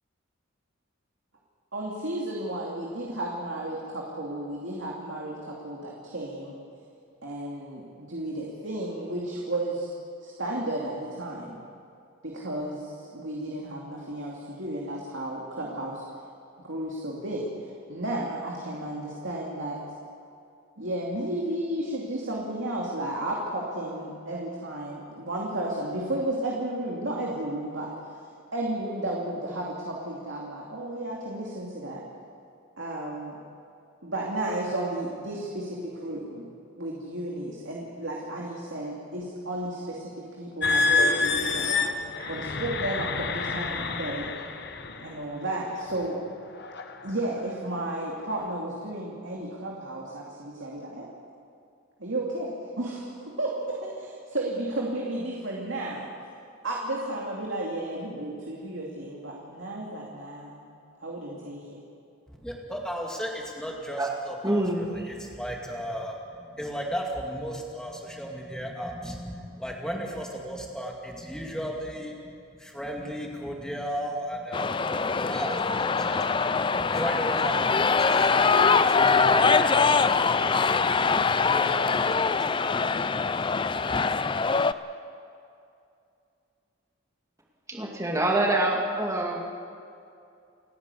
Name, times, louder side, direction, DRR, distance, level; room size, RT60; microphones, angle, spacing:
voice 1, 1.7-6.6 7.2-9.9 10.2-11.6 12.2-16.0 16.6-19.8 20.8-28.1 28.5-32.0 32.8-33.4 34.0-36.5 36.8-41.9 42.3-44.3 45.0-46.2 47.0-51.1 52.0-56.1 56.6-60.7 61.0-61.8, right 1 dB, 65° right, -3 dB, 2.6 m, -33 dB
sound 1, 40.6-45.1 45.8-46.0 46.6-47.0, left 4 dB, 50° left, 1.1 m, -27 dB
voice 2, 62.3-72.3 72.6-80.0 81.1-82.5 82.9-83.0 83.7-84.0, equal, 5° left, -1 dB, 2.4 m, -35 dB
voice 3, 64.4-65.1 87.7-89.4, right 1 dB, 15° right, 0 dB, 2.3 m, -26 dB
sound 2, 74.5-84.7, left 5 dB, 25° left, 0.4 m, -23 dB
29.5 x 10.5 x 8.5 m, 2.5 s
head